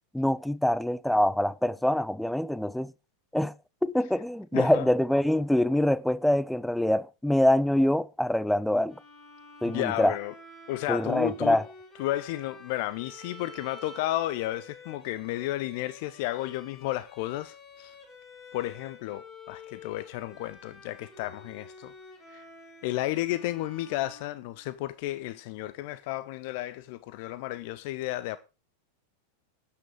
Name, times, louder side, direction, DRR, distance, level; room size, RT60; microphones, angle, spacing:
voice 1, 0.1-2.9 3.3-3.5 3.8-8.9 9.6-10.1 10.9-11.6, left 1 dB, ahead, 0.5 m, -25 dB
voice 2, 4.5-4.9 9.6-10.3 10.7-11.6 12.0-17.9 18.5-21.9 22.3-22.4 22.8-28.4, left 15 dB, 50° left, 0.6 m, -32 dB
Bowed string instrument, 8.9-24.9, left 3 dB, 30° left, 5.4 m, -50 dB
12.5 x 8.6 x 4.8 m
figure-of-eight pair, 90°, 0 cm